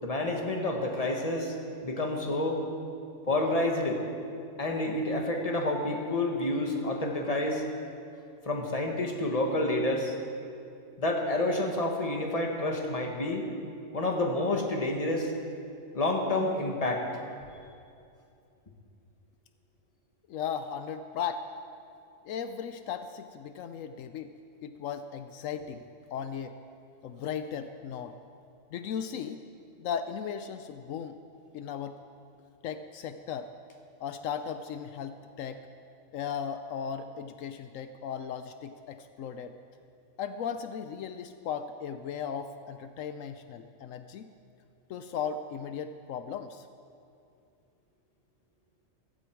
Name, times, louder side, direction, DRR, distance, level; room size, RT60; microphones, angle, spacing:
voice 1, 0.0-1.5 1.8-2.6 3.3-4.0 4.6-7.6 8.5-10.1 11.0-13.5 13.9-15.3 15.9-17.1, left 2 dB, 30° left, 2 dB, 1.7 m, -29 dB
voice 2, 20.3-21.4 22.2-24.3 24.6-26.5 27.0-28.1 28.7-29.4 29.8-31.2 31.5-32.0 32.6-33.5 34.0-35.6 36.1-39.5 40.2-44.3 44.9-46.7, left 7 dB, 80° left, 9 dB, 1.0 m, -36 dB
15.5 x 15.5 x 4.6 m, 2.5 s
omnidirectional pair, 1.3 m